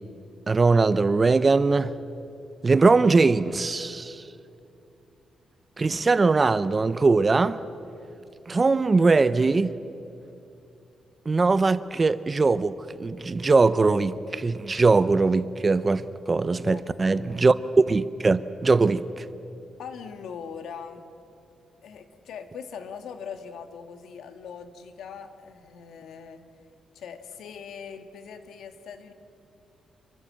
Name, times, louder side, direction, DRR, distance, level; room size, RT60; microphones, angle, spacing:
voice 1, 0.5-1.9 2.6-4.2 5.8-7.6 8.5-9.7 11.3-17.5 17.9-19.3, right 3 dB, 20° right, 0.6 m, -21 dB
voice 2, 16.6-17.4 19.8-21.0 21.8-26.4 26.9-29.1, left 6 dB, 80° left, 1.9 m, -41 dB
28.0 x 23.5 x 7.6 m
wide cardioid pair, 175°, 0 cm